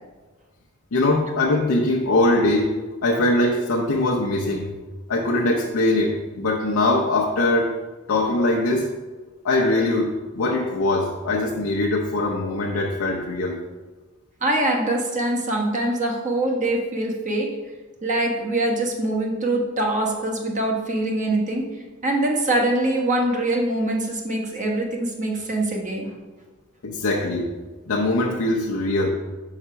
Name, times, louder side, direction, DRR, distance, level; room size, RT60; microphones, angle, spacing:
voice 1, 0.9-2.7 3.0-4.7 5.1-7.7 8.1-8.9 9.4-13.6 26.8-27.5 27.9-29.1, left 2 dB, 80° left, -1 dB, 0.7 m, -22 dB
voice 2, 14.4-17.5 18.0-21.7 22.0-26.1, right 1 dB, 35° right, 0 dB, 1.2 m, -23 dB
5.7 x 4.9 x 5.6 m, 1.3 s
head